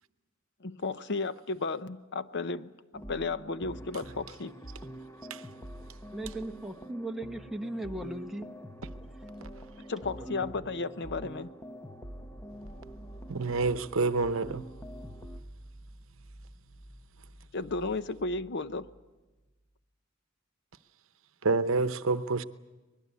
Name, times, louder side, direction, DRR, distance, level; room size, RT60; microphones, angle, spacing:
voice 1, 0.6-4.5 9.9-11.5 17.5-18.9, left 3 dB, 55° left, 0.8 m, -34 dB
sound 1, 2.9-15.4, equal, 15° left, 0.9 m, -45 dB
voice 2, 6.1-8.5 10.2-10.5, right 1 dB, ahead, 1.2 m, -37 dB
sound 2, 12.3-19.4, right 1 dB, 90° left, 7.5 m, -51 dB
voice 3, 13.3-14.6 21.4-22.4, right 3 dB, 75° right, 0.9 m, -28 dB
24.5 x 20.5 x 8.3 m
head